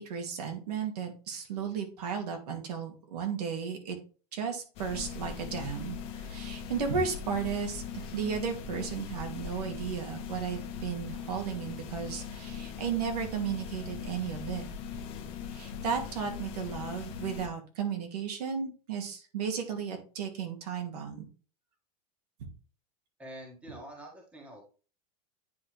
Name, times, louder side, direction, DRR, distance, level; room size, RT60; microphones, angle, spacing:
voice 1, 0.0-4.0 4.3-14.6 14.9-15.0 15.5-21.2, right 6 dB, 90° right, 3 dB, 2.4 m, -34 dB
sound 1, 4.8-17.5, left 7 dB, 30° left, 1.0 m, -40 dB
voice 2, 23.2-24.6, right 1 dB, 5° right, 0 dB, 1.6 m, -46 dB
9.4 x 4.5 x 3.4 m, 0.36 s
supercardioid pair, 175°, 19 cm